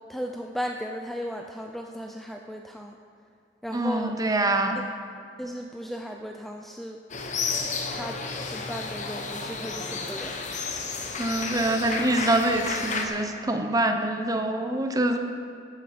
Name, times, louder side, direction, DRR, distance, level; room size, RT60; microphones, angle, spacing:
voice 1, 0.1-3.0 3.6-4.1 5.4-7.0 7.9-10.3, equal, ahead, 2 dB, 0.5 m, -36 dB
voice 2, 3.7-4.8 11.2-15.2, right 1 dB, 20° right, 5 dB, 0.9 m, -25 dB
sound 1, 7.1-13.1, left 4 dB, 45° left, 1.1 m, -32 dB
14.0 x 9.5 x 5.0 m, 2.3 s
head